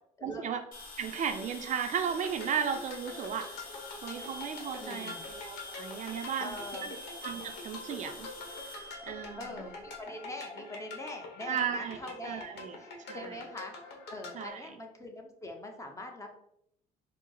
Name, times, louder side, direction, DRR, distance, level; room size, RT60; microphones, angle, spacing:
voice 1, 0.2-0.6 1.0-3.5 4.0-6.6 6.8-6.9 7.2-8.3 9.0-9.7 11.5-12.0 12.2-13.4 14.3-14.8, right 7 dB, 45° right, 6 dB, 0.4 m, -35 dB
sound 1, 0.7-10.0, left 2 dB, 55° left, 1.3 m, -46 dB
sound 2, 2.1-14.5, left 3 dB, 80° left, 1.0 m, -45 dB
voice 2, 4.8-5.2 6.4-6.9 9.4-12.5 12.8-13.7 14.1-16.3, left 1 dB, 15° left, 3 dB, 0.7 m, -43 dB
4.4 x 2.0 x 3.7 m, 0.75 s
cardioid pair, 110°, 17 cm